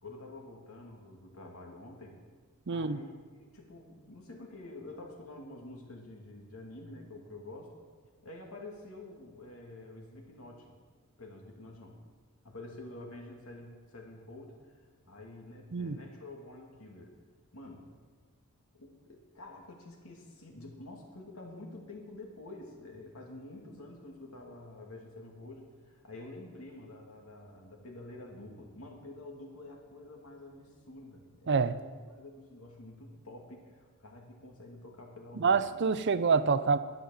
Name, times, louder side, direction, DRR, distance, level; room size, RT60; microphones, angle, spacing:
voice 1, 0.0-2.2 2.7-3.1 3.4-7.7 8.2-10.8 11.2-12.0 12.4-14.6 15.0-17.1 17.5-17.9 18.7-35.8, left 2 dB, 70° left, 0 dB, 2.6 m, -48 dB
voice 2, 2.7-3.0 15.7-16.0 31.5-31.8 35.4-36.8, right 5 dB, 55° right, 14 dB, 0.5 m, -26 dB
12.0 x 9.4 x 7.2 m, 1.5 s
head